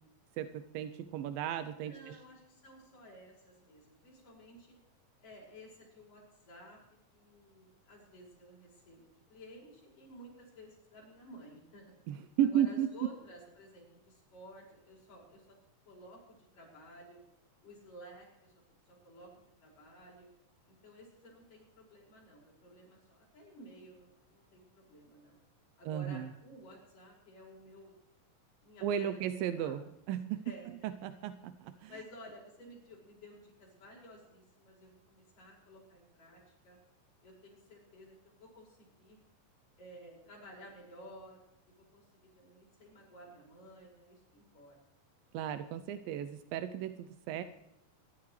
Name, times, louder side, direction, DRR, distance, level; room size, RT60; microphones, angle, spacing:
voice 1, 0.4-2.2 12.1-12.9 25.9-26.3 28.8-29.8 30.1-30.4 30.8-31.9 45.3-47.4, right 10 dB, 85° right, 10 dB, 2.4 m, -34 dB
voice 2, 1.8-4.8 5.2-6.8 7.1-9.0 9.3-11.9 12.5-15.6 15.9-17.2 17.6-18.5 18.9-20.3 20.7-25.4 25.8-28.0 28.6-29.2 29.6-29.8 30.5-31.1 31.9-36.8 37.2-39.2 39.8-41.4 41.7-44.8, equal, 65° left, -4 dB, 7.1 m, -54 dB
25.0 x 12.5 x 3.2 m, 0.88 s
omnidirectional pair, 4.0 m